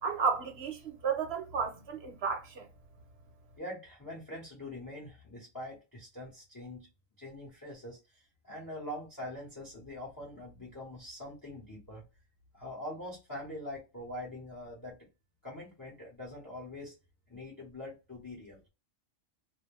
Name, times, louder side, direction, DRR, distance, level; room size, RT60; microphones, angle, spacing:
voice 1, 0.0-2.7, right 5 dB, 55° right, 1.0 m, -33 dB
voice 2, 3.6-6.9 7.2-12.0 12.5-15.0 15.4-16.9 17.3-18.6, left 1 dB, 20° left, 0.8 m, -43 dB
2.5 x 2.2 x 3.2 m
omnidirectional pair, 1.3 m